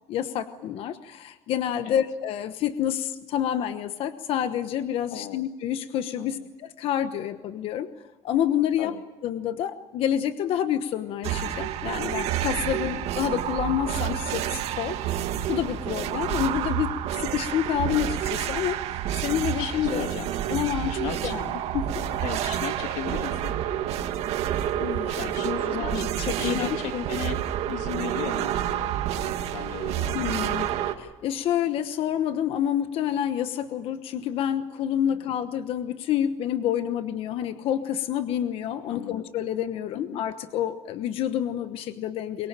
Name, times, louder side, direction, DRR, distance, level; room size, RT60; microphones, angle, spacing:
voice 1, 0.1-7.9 8.2-8.9 9.2-15.0 15.5-16.9 17.2-18.8 19.1-20.1 20.5-21.0 21.2-21.4 21.7-22.1 24.7-27.1 30.1-30.7 31.0-42.5, left 10 dB, 55° left, 10 dB, 1.1 m, -28 dB
voice 2, 5.1-5.5 6.2-6.5 8.8-9.0 12.7-13.0 16.1-16.4 19.6-20.3 20.9-21.4 22.2-23.6 25.2-26.1 26.4-27.4 27.7-29.0 29.2-31.0 35.1-35.4 38.9-39.3 39.9-40.2, left 11 dB, 85° left, 8 dB, 1.7 m, -37 dB
sound 1, 11.2-30.9, right 11 dB, 60° right, 2.0 m, -29 dB
23.0 x 23.0 x 8.9 m, 1.1 s
cardioid pair, 165°, 12 cm